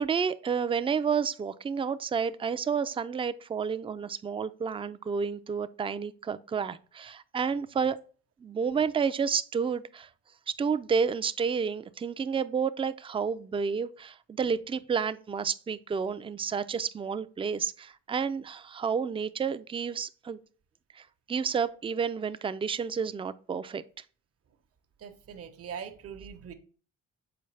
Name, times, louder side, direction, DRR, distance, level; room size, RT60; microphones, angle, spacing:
voice 1, 0.0-8.0 8.4-10.1 10.5-20.4 21.0-23.8, right 6 dB, 20° right, 0.4 m, -30 dB
voice 2, 25.0-26.6, right 7 dB, 50° right, 0.9 m, -42 dB
6.8 x 4.6 x 3.2 m
cardioid pair, 90°, 30 cm